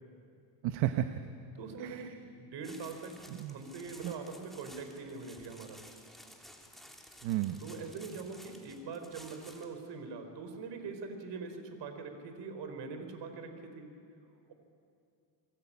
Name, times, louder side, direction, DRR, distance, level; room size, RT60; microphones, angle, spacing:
voice 1, 0.6-1.1 1.8-2.1 3.3-3.6 4.0-4.1 7.2-7.6, right 13 dB, 75° right, 8 dB, 1.2 m, -32 dB
voice 2, 1.5-3.2 3.5-5.8 7.6-13.9, right 4 dB, 60° right, 7 dB, 4.4 m, -43 dB
sound 1, 2.6-9.8, equal, ahead, 3.1 m, -54 dB
29.0 x 22.5 x 8.7 m, 2.5 s
cardioid pair, 130°, 47 cm